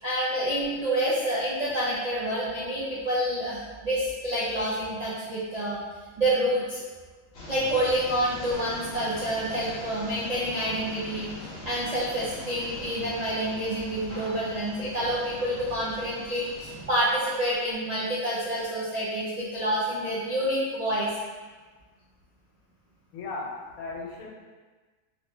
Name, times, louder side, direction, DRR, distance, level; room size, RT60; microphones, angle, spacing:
voice 1, 0.0-5.8 6.2-6.8 7.5-11.3 11.6-21.1, right 1 dB, 65° right, -8 dB, 0.4 m, -28 dB
sound 1, 7.3-16.8, left 1 dB, 55° left, 1.0 m, -42 dB
voice 2, 23.1-24.3, left 3 dB, 85° left, -2 dB, 1.1 m, -36 dB
2.8 x 2.7 x 3.1 m, 1.4 s
omnidirectional pair, 1.5 m